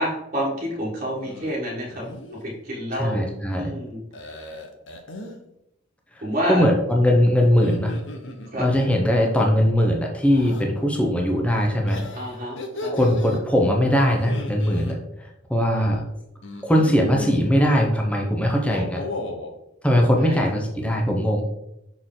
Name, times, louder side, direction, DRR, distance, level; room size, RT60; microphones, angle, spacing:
voice 1, 0.0-2.0 2.4-4.0 6.2-6.6 8.5-8.6 12.1-12.9 15.7-15.9 20.2-20.4, equal, 35° right, -7 dB, 1.4 m, -28 dB
sound 1, 1.2-1.5 1.9-2.4 4.1-5.4 7.4-8.8 10.3-10.7 11.9-13.4 14.1-15.0 16.4-17.5 18.5-19.5, left 1 dB, 60° left, 0.9 m, -34 dB
voice 2, 2.9-3.7 6.1-8.0 8.6-12.0 12.9-16.0 16.6-19.0 19.8-21.5, equal, 5° left, 0 dB, 0.7 m, -20 dB
6.1 x 4.5 x 3.8 m, 0.84 s
head